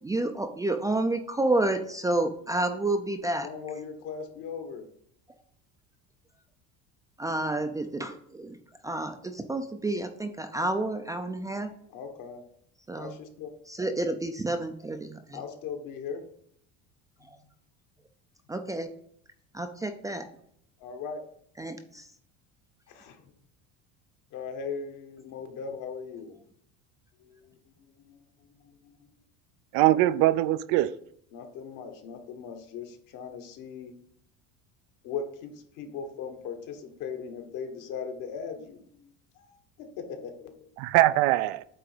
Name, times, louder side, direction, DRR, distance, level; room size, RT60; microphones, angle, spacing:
voice 1, 0.0-3.5 7.2-11.7 12.9-13.1 13.7-15.4 17.2-17.4 18.5-18.9 19.5-20.3 21.6-22.1, right 2 dB, 10° right, 0.4 m, -30 dB
voice 2, 3.4-4.8 11.9-12.4 13.0-13.5 15.3-16.2 20.8-21.2 22.9-23.2 24.3-26.3 27.2-27.6 28.0-28.2 28.6-28.9 31.3-33.9 35.0-39.1 39.4-40.7, left 6 dB, 65° left, 1.5 m, -39 dB
voice 3, 29.7-31.0 40.8-41.6, right 15 dB, 75° right, 0.5 m, -22 dB
8.7 x 3.4 x 5.0 m
cardioid pair, 135°, 35 cm